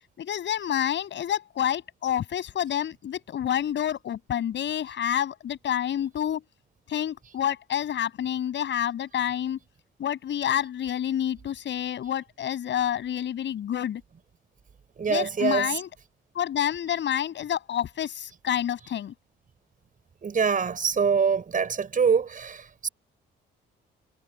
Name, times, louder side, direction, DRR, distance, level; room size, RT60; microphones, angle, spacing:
voice 1, 0.2-6.4 6.9-9.6 10.0-14.0 15.1-15.9 16.4-19.1, left 10 dB, 65° left, 7.4 m, -28 dB
voice 2, 15.0-15.7 20.2-22.9, right 6 dB, 45° right, 6.5 m, -24 dB
cardioid pair, 90°, 20 cm